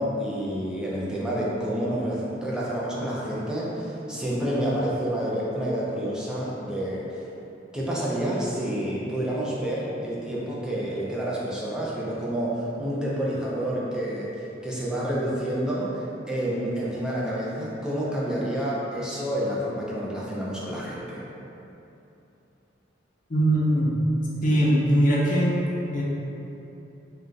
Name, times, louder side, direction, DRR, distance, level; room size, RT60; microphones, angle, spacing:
voice 1, 0.0-7.1 7.7-14.3 14.6-21.2, right 1 dB, 5° right, -7 dB, 0.4 m, -29 dB
voice 2, 23.3-24.0 24.4-25.6 25.9-26.0, right 1 dB, 45° left, -6 dB, 0.6 m, -21 dB
2.3 x 2.2 x 3.8 m, 2.9 s
head